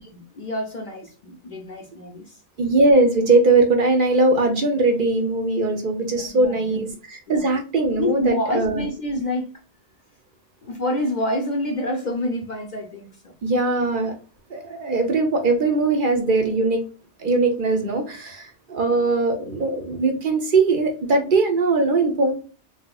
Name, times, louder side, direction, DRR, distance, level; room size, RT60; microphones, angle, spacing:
voice 1, 0.0-2.3 6.1-6.8 7.3-7.5 8.0-9.5 10.6-13.1, left 1 dB, 50° left, 0.6 m, -27 dB
voice 2, 2.6-8.9 13.4-14.1 14.5-16.8 17.2-22.3, right 3 dB, 55° right, 0.7 m, -20 dB
3.3 x 2.7 x 2.3 m
omnidirectional pair, 1.2 m